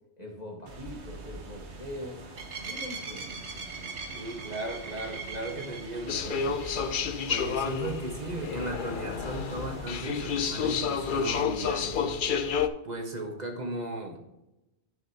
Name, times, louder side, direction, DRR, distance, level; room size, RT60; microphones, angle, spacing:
voice 1, 0.2-2.2 2.7-3.4, left 1 dB, 40° left, -2 dB, 1.4 m, -42 dB
sound 1, 0.7-11.4, right 3 dB, 75° right, 1.5 m, -42 dB
voice 2, 4.1-6.6 7.3-12.2 12.8-14.2, right 2 dB, 40° right, 2 dB, 1.5 m, -36 dB
sound 2, 6.1-12.7, left 6 dB, 55° left, 0.7 m, -30 dB
11.5 x 5.7 x 2.9 m, 0.93 s
omnidirectional pair, 1.1 m